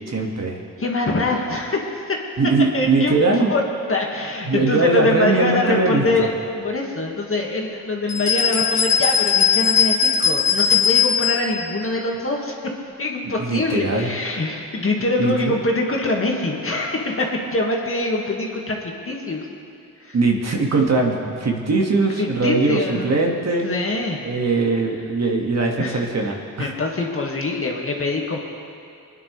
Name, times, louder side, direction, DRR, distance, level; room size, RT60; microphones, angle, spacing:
voice 1, 0.1-0.6 2.4-3.5 4.5-6.3 13.4-14.1 15.2-15.6 20.1-23.7 24.2-26.7, right 3 dB, 50° right, 0 dB, 2.0 m, -21 dB
voice 2, 0.8-2.2 2.7-3.6 3.9-12.7 13.0-19.5 20.0-20.2 22.2-23.1 23.6-24.2 25.8-26.3 26.6-28.4, left 2 dB, 40° left, 0 dB, 2.0 m, -24 dB
sound 1, 8.1-11.4, left 7 dB, 75° left, 2.0 m, -18 dB
21.5 x 9.9 x 3.4 m, 2.5 s
cardioid pair, 65°, 34 cm